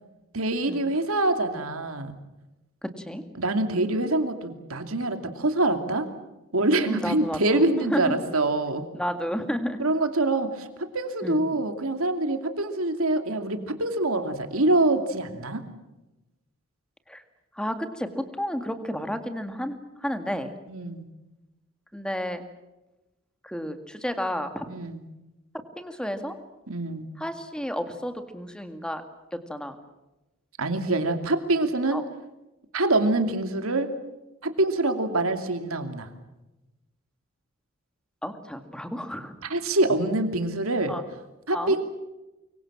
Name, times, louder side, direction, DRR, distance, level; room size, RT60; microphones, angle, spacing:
voice 1, 0.3-2.2 3.4-6.1 6.5-8.9 9.8-15.6 20.7-21.1 24.7-25.0 26.7-27.1 30.6-32.0 32.7-33.9 34.4-36.1 39.4-40.9 41.5-41.8, right 2 dB, 80° right, 7 dB, 2.7 m, -25 dB
voice 2, 2.8-3.2 6.9-7.6 7.9-8.1 8.9-9.8 11.2-11.6 17.1-17.2 17.6-20.5 21.9-22.4 23.4-24.7 25.8-26.3 27.2-29.0 29.3-29.8 31.9-32.0 38.2-39.3 40.9-41.0 41.5-41.8, equal, 5° left, 7 dB, 2.0 m, -31 dB
24.5 x 23.5 x 7.4 m, 1.0 s
head